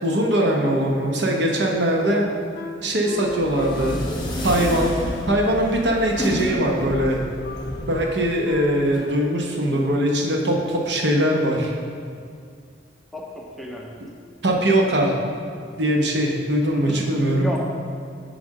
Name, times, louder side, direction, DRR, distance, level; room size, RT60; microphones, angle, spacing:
voice 1, 0.0-2.2 2.8-4.0 4.4-4.9 5.3-7.2 7.9-11.7 14.4-15.2 15.8-17.5, right 1 dB, 70° right, 0 dB, 0.9 m, -21 dB
Wind instrument woodwind instrument, 2.0-9.5, left 1 dB, 50° left, 0.5 m, -38 dB
sound 1, 3.2-9.0, left 1 dB, 25° left, 1.2 m, -30 dB
voice 2, 13.1-13.9 16.7-17.0 17.3-17.6, equal, ahead, -2 dB, 0.5 m, -32 dB
7.3 x 3.4 x 6.3 m, 2.2 s
head